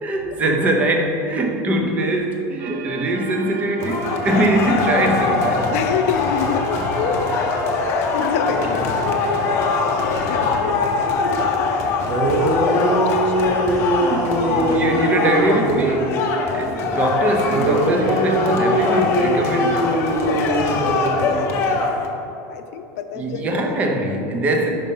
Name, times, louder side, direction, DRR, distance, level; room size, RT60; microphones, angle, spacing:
voice 1, 0.0-5.7 11.9-12.4 12.7-12.9 14.0-16.3 16.5-20.0 21.6-21.8 23.2-24.8, right 1 dB, 20° right, 2 dB, 0.6 m, -22 dB
sound 1, 2.6-11.1, right 5 dB, 70° right, 0.5 m, -36 dB
sound 2, 3.8-22.1, left 4 dB, 35° left, 0.6 m, -23 dB
voice 2, 5.7-7.4 7.7-11.9 13.2-14.1 20.2-21.9 22.5-23.7 24.6-24.8, left 7 dB, 80° left, 8 dB, 0.5 m, -28 dB
sound 3, 11.8-11.9 12.1-16.3 17.5-21.5, right 1 dB, 50° right, 0.9 m, -21 dB
5.3 x 5.3 x 5.5 m, 2.8 s
cardioid pair, 180°, 8 cm